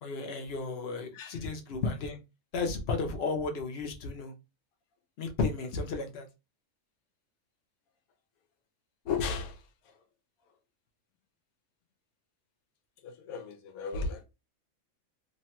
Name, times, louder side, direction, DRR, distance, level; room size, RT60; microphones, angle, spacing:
voice 1, 0.0-2.2 2.5-4.3 5.2-6.3, left 3 dB, 60° left, 0.7 m, -33 dB
voice 2, 9.0-9.6 13.0-14.2, left 4 dB, 85° left, 1.1 m, -34 dB
3.0 x 2.1 x 2.8 m
omnidirectional pair, 1.5 m